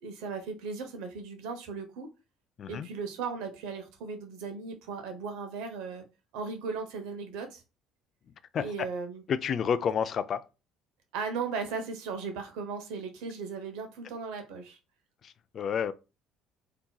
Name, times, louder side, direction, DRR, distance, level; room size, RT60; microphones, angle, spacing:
voice 1, 0.0-2.1 2.7-6.0 6.3-7.6 8.6-9.2 11.1-14.8, right 5 dB, 80° right, 0.8 m, -37 dB
voice 2, 9.3-10.4 15.2-15.9, left 7 dB, 50° left, 0.3 m, -30 dB
3.7 x 2.8 x 2.3 m
supercardioid pair, 85°, 0 cm